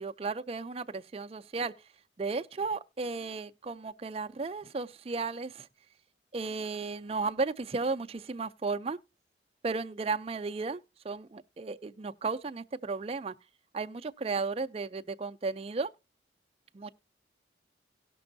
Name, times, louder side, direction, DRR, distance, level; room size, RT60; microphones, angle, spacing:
voice 1, 0.0-1.7 2.2-5.7 6.3-9.0 9.6-13.3 13.7-15.9 16.7-16.9, right 4 dB, 35° right, 0.4 m, -34 dB
18.0 x 6.1 x 2.6 m
head